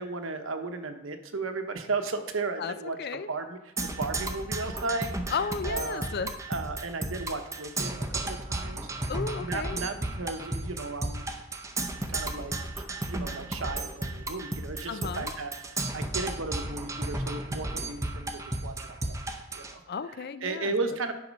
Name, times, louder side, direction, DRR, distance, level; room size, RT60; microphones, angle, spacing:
voice 1, 0.0-3.0 3.3-6.1 6.5-8.9 9.4-11.3 11.9-12.5 13.0-19.2 19.5-19.8 20.4-21.1, right 3 dB, 80° right, 7 dB, 1.0 m, -35 dB
voice 2, 2.6-3.3 5.3-6.3 9.1-9.8 14.9-15.3 19.9-20.7, left 5 dB, 55° left, 13 dB, 0.5 m, -34 dB
Percussion, 3.8-19.7, right 2 dB, 15° right, 0.7 m, -34 dB
9.5 x 5.8 x 5.3 m, 0.98 s
head